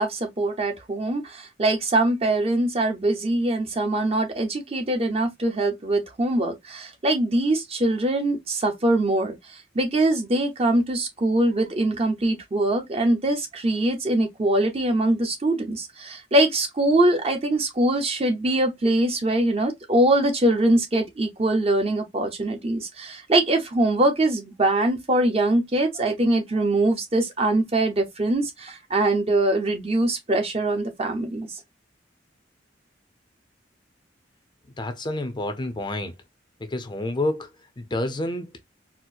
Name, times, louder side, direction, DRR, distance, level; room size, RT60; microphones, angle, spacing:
voice 1, 0.0-31.5, right 1 dB, 30° right, 0.7 m, -23 dB
voice 2, 34.8-36.1 36.6-37.5 37.8-38.5, left 1 dB, 25° left, 0.5 m, -28 dB
4.3 x 2.0 x 2.4 m
head